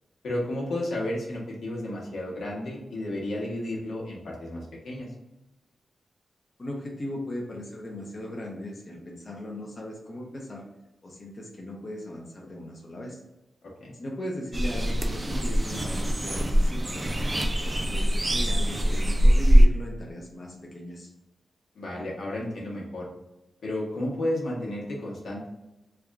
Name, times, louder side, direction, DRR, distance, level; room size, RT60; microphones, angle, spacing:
voice 1, 0.2-5.1 13.8-13.9 21.7-23.1 23.6-25.5, left 1 dB, 85° left, -4 dB, 1.1 m, -32 dB
voice 2, 6.6-10.6 11.0-13.2 13.9-17.1 17.5-21.1, left 1 dB, 40° left, -2 dB, 0.6 m, -38 dB
sound 1, 14.5-19.7, equal, 20° right, 0.4 m, -22 dB
3.4 x 2.4 x 3.5 m, 0.98 s
wide cardioid pair, 130°, 0 cm